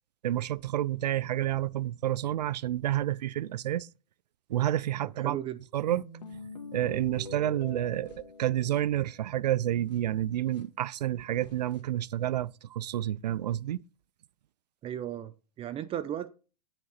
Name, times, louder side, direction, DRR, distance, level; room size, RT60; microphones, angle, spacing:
voice 1, 0.2-3.9 4.5-5.4 5.7-6.0 6.7-13.8, right 12 dB, 85° right, 0.4 m, -29 dB
voice 2, 5.2-5.6 14.8-16.3, right 11 dB, 25° right, 0.6 m, -35 dB
sound 1, 5.9-9.5 9.9-10.0 10.5-10.6 11.4-11.8, left 3 dB, 90° left, 1.7 m, -45 dB
8.5 x 6.7 x 4.1 m
hypercardioid pair, 115°, 21 cm